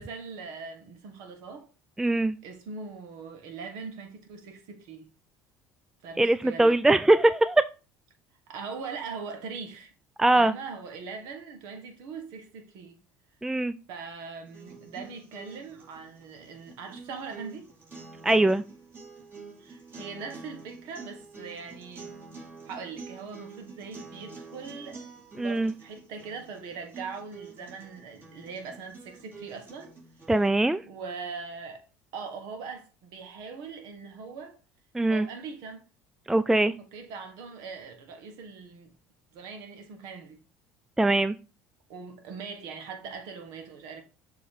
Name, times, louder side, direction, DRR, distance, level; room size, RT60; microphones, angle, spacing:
voice 1, 0.0-1.7 2.4-5.1 6.0-6.8 8.5-9.9 10.3-13.0 13.9-17.7 19.6-22.1 22.6-25.1 25.4-29.9 30.8-31.9 32.1-34.6 35.1-35.8 36.8-38.9 39.3-40.4 41.9-44.0, right 5 dB, 70° right, 1.5 m, -41 dB
voice 2, 2.0-2.4 6.2-7.7 10.2-10.5 13.4-13.7 18.2-18.6 25.4-25.7 30.3-30.8 34.9-35.3 36.3-36.7 41.0-41.4, right 2 dB, 5° right, 0.3 m, -22 dB
sound 1, 14.5-30.5, right 4 dB, 35° right, 3.1 m, -47 dB
6.9 x 3.1 x 5.0 m
hypercardioid pair, 75°, 7 cm